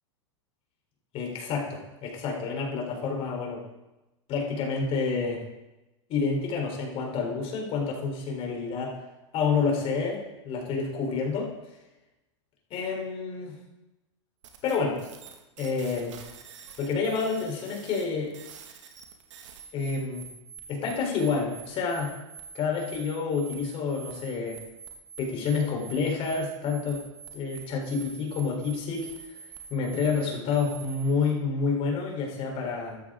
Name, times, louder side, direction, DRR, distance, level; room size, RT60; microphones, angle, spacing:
voice 1, 1.1-3.6 4.3-5.4 6.1-8.9 9.3-11.5 12.7-13.6 14.6-15.0 15.6-16.1 16.8-18.3 19.7-20.2 20.7-22.1 22.5-24.6 25.2-27.0 27.3-29.1 29.7-33.0, left 5 dB, 40° left, 0 dB, 4.2 m, -29 dB
sound 1, 14.4-31.3, right 6 dB, 75° right, 2.1 m, -46 dB
14.5 x 13.5 x 3.9 m, 1.0 s
hypercardioid pair, 130°, 16 cm